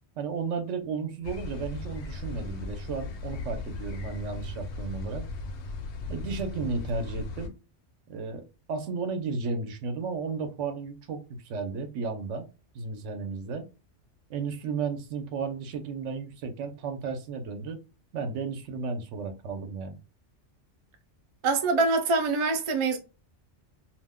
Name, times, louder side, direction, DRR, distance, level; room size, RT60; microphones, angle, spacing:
voice 1, 0.2-5.2 6.1-7.5 8.1-8.4 8.7-11.2 11.5-12.5 12.7-13.7 14.3-17.8 18.1-20.0, right 4 dB, 90° right, 1.0 m, -33 dB
sound 1, 1.2-7.5, left 3 dB, 70° left, 0.8 m, -37 dB
voice 2, 21.4-23.0, right 3 dB, 50° right, 0.3 m, -24 dB
2.5 x 2.1 x 3.5 m
omnidirectional pair, 1.2 m